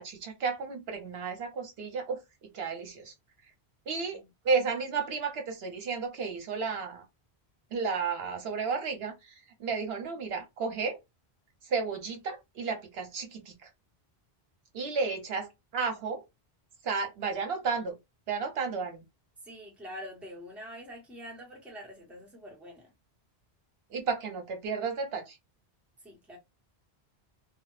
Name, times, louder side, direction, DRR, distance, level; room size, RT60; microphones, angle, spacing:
voice 1, 0.0-2.2 2.5-3.1 3.9-7.0 7.7-11.0 11.7-13.5 14.7-16.2 16.8-18.0 18.3-19.0 23.9-25.4, right 5 dB, 70° right, 0.9 m, -32 dB
voice 2, 19.4-22.9 26.0-26.4, equal, ahead, 0.7 m, -45 dB
2.2 x 2.0 x 3.0 m
omnidirectional pair, 1.1 m